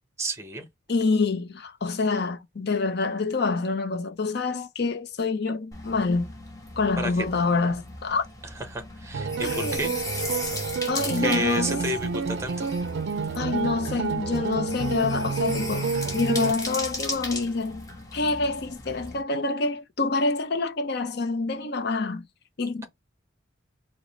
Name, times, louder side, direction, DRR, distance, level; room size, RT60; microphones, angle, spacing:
voice 1, 0.2-0.7 7.0-7.3 8.7-10.1 11.2-12.7 13.2-13.4, right 1 dB, 15° right, 0.8 m, -31 dB
voice 2, 0.9-6.3 6.8-8.2 9.4-9.8 10.9-11.8 13.3-22.2 22.6-22.9, left 3 dB, 55° left, 0.6 m, -27 dB
sound 1, 5.7-19.2, left 2 dB, 20° left, 1.2 m, -37 dB
sound 2, 9.1-16.5, right 5 dB, 60° right, 0.4 m, -29 dB
4.7 x 2.1 x 4.0 m
head